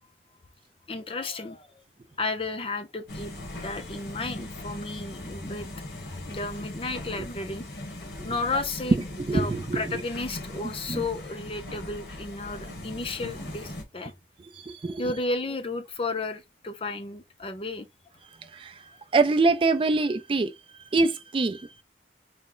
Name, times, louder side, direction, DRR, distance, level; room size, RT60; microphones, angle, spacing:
voice 1, 0.9-1.7 2.2-3.3 3.6-5.7 6.3-7.7 8.2-9.0 9.3-14.1 15.0-17.9, left 3 dB, 30° left, 0.5 m, -33 dB
sound 1, 3.1-13.8, left 1 dB, 75° left, 1.2 m, -39 dB
voice 2, 8.9-10.0 10.6-11.0 14.4-15.0 18.4-21.8, right 3 dB, 30° right, 0.3 m, -26 dB
4.1 x 2.1 x 3.7 m
head